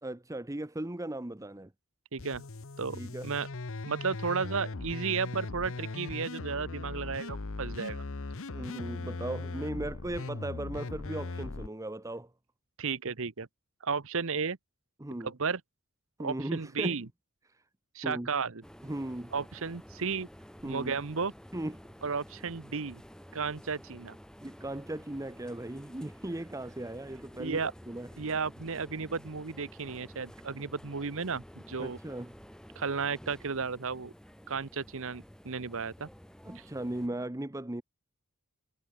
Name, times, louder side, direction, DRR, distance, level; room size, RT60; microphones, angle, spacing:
voice 1, 0.0-1.7 2.9-3.3 8.5-12.3 15.0-15.3 16.2-17.0 18.0-18.3 18.8-19.3 20.6-21.0 21.5-21.8 24.4-28.1 31.8-32.3 36.4-37.8, right 1 dB, 15° right, 0.8 m, -37 dB
voice 2, 2.1-2.4 2.8-3.5 3.8-8.0 12.8-13.5 13.8-14.6 15.1-15.6 16.2-17.1 17.9-18.6 19.3-20.3 20.7-21.3 22.0-23.0 23.3-24.2 27.4-27.7 28.2-32.0 32.8-34.1 34.5-36.1 36.5-36.6, right 5 dB, 60° right, 1.0 m, -33 dB
sound 1, 2.2-11.7, left 3 dB, 60° left, 1.0 m, -39 dB
sound 2, 18.6-37.1, equal, 5° left, 2.3 m, -51 dB
head